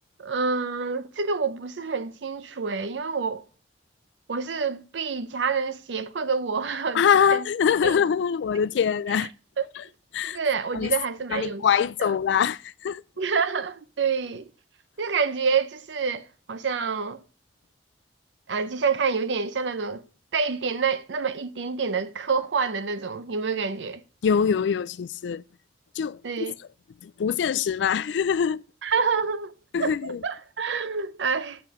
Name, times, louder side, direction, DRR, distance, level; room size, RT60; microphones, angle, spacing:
voice 1, 0.2-3.4 4.3-7.0 7.3-7.4 7.8-8.0 9.6-9.7 10.2-11.7 12.0-12.1 13.2-14.5 15.0-17.2 18.5-20.0 20.3-24.0 26.2-26.5 28.8-29.5 29.8-31.6, right 5 dB, 85° right, 0.6 m, -27 dB
voice 2, 6.9-9.3 9.8-9.9 10.1-10.4 10.7-10.9 11.3-13.0 24.2-25.4 26.0-26.5 27.0-28.6 29.7-30.2, left 7 dB, 75° left, 0.3 m, -24 dB
7.7 x 6.9 x 3.0 m
head